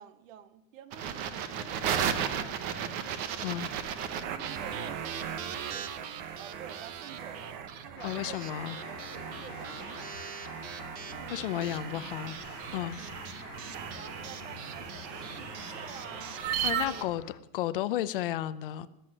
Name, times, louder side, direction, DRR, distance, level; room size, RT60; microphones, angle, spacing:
voice 1, 0.0-3.3 4.3-6.0 6.4-8.5 8.9-10.2 11.1-12.0 12.6-13.6 13.9-16.4 16.7-17.1, right 9 dB, 60° right, 13 dB, 1.6 m, -50 dB
sound 1, 0.9-17.0, right 8 dB, 20° right, 0.6 m, -36 dB
sound 2, 8.0-17.4, left 12 dB, 80° left, 1.1 m, -48 dB
voice 2, 8.0-8.8 11.3-12.4 12.7-13.0 16.6-17.2 17.5-18.9, left 13 dB, 40° left, 14 dB, 0.6 m, -32 dB
21.0 x 8.0 x 6.4 m, 0.88 s
supercardioid pair, 175°, 43 cm